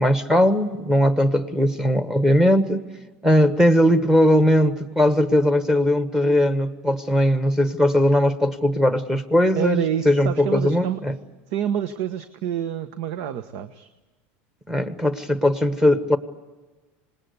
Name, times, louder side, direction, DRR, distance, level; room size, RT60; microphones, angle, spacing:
voice 1, 0.0-2.8 3.2-11.2 14.7-16.2, left 1 dB, 5° right, 9 dB, 1.4 m, -19 dB
voice 2, 9.6-11.0 11.5-13.9, right 9 dB, 65° right, 11 dB, 1.2 m, -27 dB
26.0 x 20.0 x 8.1 m, 1.2 s
supercardioid pair, 130°, 7 cm